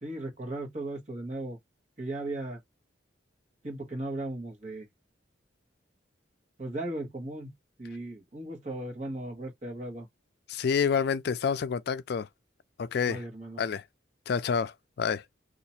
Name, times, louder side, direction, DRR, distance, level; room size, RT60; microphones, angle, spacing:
voice 1, 0.0-1.6 2.0-2.6 3.6-4.9 6.6-7.5 7.8-10.1 13.0-13.6, right 1 dB, 40° right, 1.3 m, -37 dB
voice 2, 10.5-12.3 12.8-13.2 13.6-13.8 14.3-15.2, left 6 dB, 60° left, 0.4 m, -28 dB
2.8 x 2.5 x 4.1 m
head